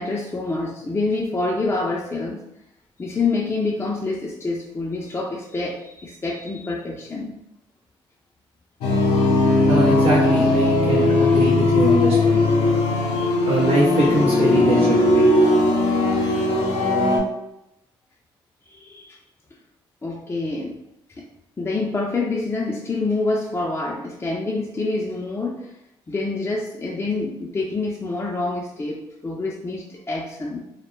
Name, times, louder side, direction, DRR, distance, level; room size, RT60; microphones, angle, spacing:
voice 1, 0.0-2.4 3.0-7.4 18.7-19.2 20.0-20.8 21.2-21.3 21.6-25.7 26.1-30.7, left 3 dB, 20° left, -3 dB, 0.4 m, -27 dB
sound 1, 8.8-17.2, left 2 dB, 90° left, 0.6 m, -18 dB
voice 2, 9.7-12.4 13.4-15.3, right 1 dB, 75° right, -6 dB, 0.6 m, -23 dB
2.1 x 2.1 x 3.0 m, 0.84 s
supercardioid pair, 70°, 11 cm